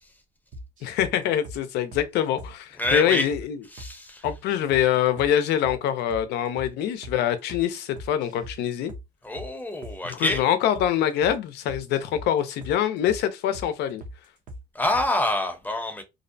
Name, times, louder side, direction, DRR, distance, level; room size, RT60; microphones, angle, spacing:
sound 1, 0.5-1.1 1.5-1.6 1.9-2.1 2.4-2.5 2.8-3.0 3.3-3.5 3.8-3.9 4.2-4.9 5.2-5.3 5.6-5.8 6.1-6.3 6.6-6.7 7.0-7.2 7.5-7.7 8.0-8.6 8.9-9.1 9.4-9.5 9.8-10.0 10.3-10.5 10.8-10.9 11.2-11.4 11.7-12.3 12.6-12.8 13.1-13.2 13.5-13.7 14.0-14.2 14.5-14.6 14.9-15.1, equal, 50° right, 0.7 m, -40 dB
voice 1, 0.8-3.6 4.2-8.9 10.0-14.0, left 10 dB, 80° left, 0.5 m, -24 dB
voice 2, 2.8-3.3 3.7-4.2 9.2-10.4 14.7-16.0, left 1 dB, 10° left, 0.7 m, -26 dB
2.6 x 2.0 x 2.6 m
cardioid pair, 110°, 17 cm